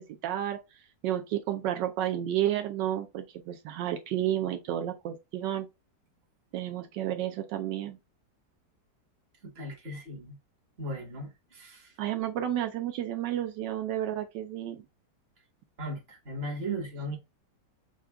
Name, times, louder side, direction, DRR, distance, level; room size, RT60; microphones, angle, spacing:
voice 1, 0.0-5.7 6.5-8.0 12.0-14.8, right 12 dB, 80° right, 1.2 m, -31 dB
voice 2, 9.5-10.4 10.8-11.9 15.8-17.2, right 1 dB, 35° right, 1.5 m, -37 dB
5.8 x 2.4 x 3.5 m
omnidirectional pair, 1.9 m